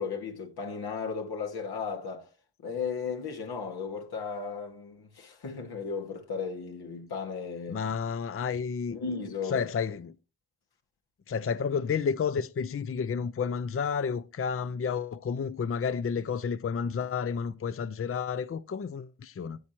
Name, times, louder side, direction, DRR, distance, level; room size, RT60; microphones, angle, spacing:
voice 1, 0.0-2.3 2.6-7.8 8.9-9.6, left 5 dB, 85° left, 2.0 m, -35 dB
voice 2, 7.7-9.0 9.5-10.1 11.3-19.6, left 6 dB, 35° left, 0.5 m, -31 dB
14.0 x 8.4 x 3.0 m
cardioid pair, 70°, 37 cm